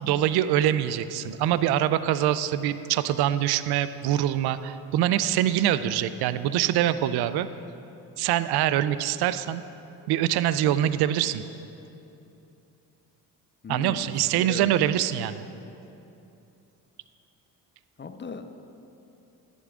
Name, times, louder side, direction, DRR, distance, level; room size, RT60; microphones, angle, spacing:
voice 1, 0.0-7.5 8.2-9.6 10.1-11.4 13.7-15.4, right 12 dB, 60° right, 14 dB, 0.5 m, -24 dB
voice 2, 13.6-14.7 15.0-15.1 18.0-18.4, left 4 dB, 25° left, 8 dB, 0.7 m, -38 dB
11.0 x 11.0 x 2.4 m, 2.8 s
hypercardioid pair, 45°, 44 cm